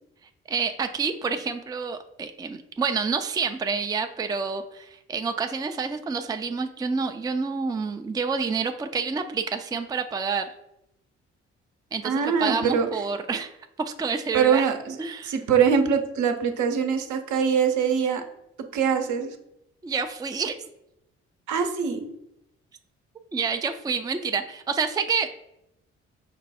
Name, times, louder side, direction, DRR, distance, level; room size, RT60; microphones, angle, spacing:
voice 1, 0.5-10.4 11.9-13.5 13.8-14.6 15.0-15.3 19.8-20.6 23.3-25.4, right 5 dB, 10° right, 7 dB, 0.4 m, -28 dB
voice 2, 12.0-12.9 14.3-15.0 15.2-18.2 18.7-19.4 21.5-22.1, right 6 dB, 60° right, 6 dB, 0.8 m, -23 dB
5.3 x 2.2 x 4.2 m, 0.82 s
hypercardioid pair, 45°, 33 cm